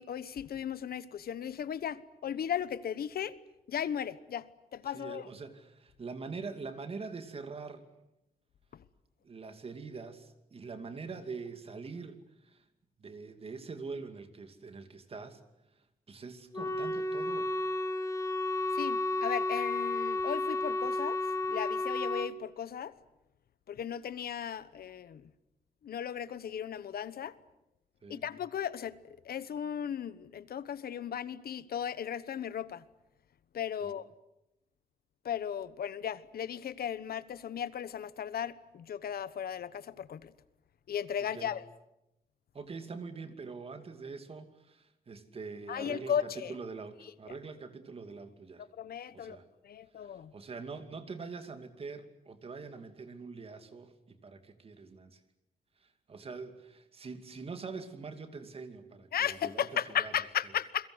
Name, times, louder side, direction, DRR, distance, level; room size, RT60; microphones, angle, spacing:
voice 1, 0.0-3.3 3.7-4.5 4.7-5.3 8.7-8.8 18.7-21.2 21.5-22.9 23.7-25.3 25.8-27.3 28.1-32.8 33.5-34.0 35.2-40.3 40.9-41.6 45.7-46.5 48.8-49.4 49.6-50.3 59.1-60.9, left 9 dB, 80° left, 16 dB, 1.1 m, -36 dB
voice 2, 4.9-7.8 9.2-12.6 13.0-15.4 15.7-17.5 28.0-28.3 33.8-33.9 41.2-41.5 42.5-48.7 49.1-49.4 50.3-55.2 55.8-60.1, right 4 dB, 40° right, 8 dB, 2.6 m, -44 dB
Wind instrument woodwind instrument, 16.5-22.3, left 2 dB, 20° left, 1.2 m, -32 dB
29.5 x 22.0 x 8.0 m, 0.88 s
wide cardioid pair, 170°, 15 cm